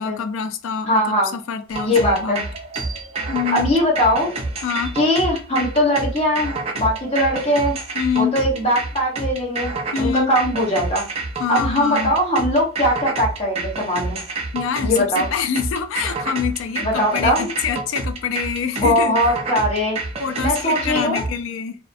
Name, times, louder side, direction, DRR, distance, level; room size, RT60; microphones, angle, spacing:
voice 1, 0.0-2.4 3.3-3.7 4.6-5.0 7.9-8.4 9.9-10.3 11.4-12.1 14.5-19.2 20.2-21.8, left 7 dB, 70° left, 0.3 m, -25 dB
voice 2, 0.9-1.3 1.8-2.4 3.5-4.3 4.9-7.8 8.2-11.0 11.5-14.2 14.8-15.3 16.8-17.5 18.8-20.0 20.4-21.2, equal, 30° left, 0.9 m, -20 dB
sound 1, 1.7-21.3, right 3 dB, 30° right, 0.4 m, -28 dB
2.4 x 2.1 x 2.5 m
head